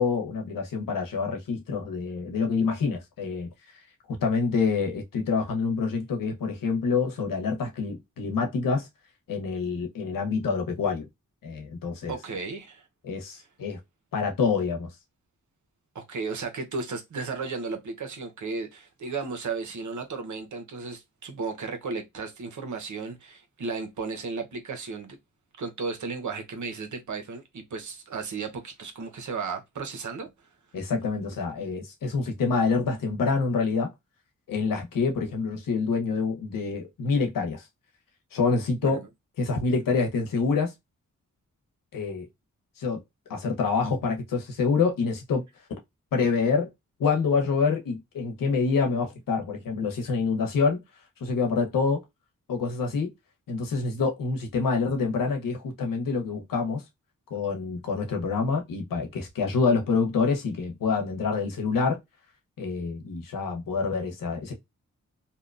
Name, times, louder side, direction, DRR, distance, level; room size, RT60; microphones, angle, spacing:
voice 1, 0.0-3.5 4.1-8.9 9.3-11.1 11.4-12.1 13.0-13.8 14.1-14.9 30.7-33.9 34.5-37.6 38.3-39.0 39.4-40.7 41.9-42.3 42.8-43.0 43.3-45.4 46.1-46.7 47.0-50.8 51.2-52.0 52.5-53.1 53.5-56.8 57.3-62.0 62.6-64.5, left 4 dB, 90° left, 0.8 m, -26 dB
voice 2, 12.1-12.8 15.9-25.2 25.6-30.3 38.8-39.0, right 4 dB, 65° right, 0.8 m, -34 dB
2.7 x 2.2 x 2.4 m
cardioid pair, 55°, 32 cm